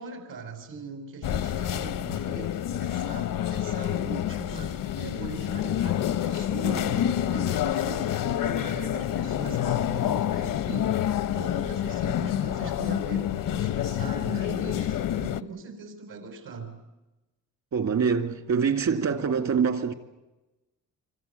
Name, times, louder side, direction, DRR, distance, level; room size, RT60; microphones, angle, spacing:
voice 1, 0.0-11.0 11.3-16.8, right 4 dB, 85° right, 5.8 m, -40 dB
sound 1, 1.2-15.4, left 11 dB, 80° left, 0.9 m, -28 dB
voice 2, 6.6-7.0 17.7-19.9, right 6 dB, 60° right, 2.4 m, -25 dB
26.5 x 25.0 x 8.4 m
cardioid pair, 130°, 32 cm